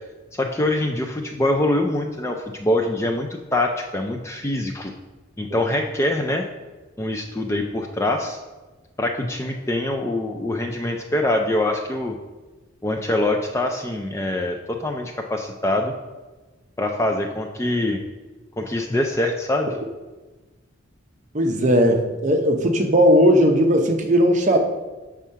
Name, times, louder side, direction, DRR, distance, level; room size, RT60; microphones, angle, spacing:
voice 1, 0.3-4.9 5.4-6.5 7.0-8.4 9.0-12.1 12.8-15.9 16.8-18.0 18.6-19.7, left 1 dB, 15° left, 2 dB, 0.3 m, -24 dB
voice 2, 21.3-24.6, equal, 35° right, 3 dB, 0.7 m, -17 dB
7.0 x 3.6 x 5.5 m, 1.2 s
head